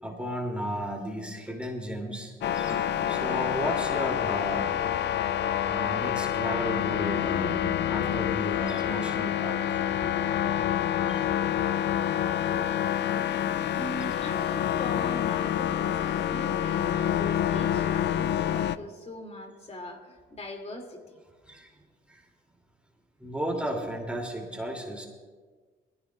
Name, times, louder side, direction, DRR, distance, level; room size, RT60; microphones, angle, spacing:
voice 1, 0.0-2.8 3.1-4.7 5.7-9.8 11.1-11.2 13.1-13.3 21.4-21.7 22.1-22.3 23.2-25.1, right 1 dB, 5° right, 0 dB, 2.7 m, -34 dB
sound 1, 2.4-18.8, left 10 dB, 60° left, 0.4 m, -27 dB
sound 2, 2.7-5.3, right 4 dB, 15° left, 3.6 m, -51 dB
voice 2, 13.7-21.2, left 1 dB, 30° left, 3 dB, 2.6 m, -40 dB
22.0 x 15.0 x 2.4 m, 1.4 s
cardioid pair, 90°, 20 cm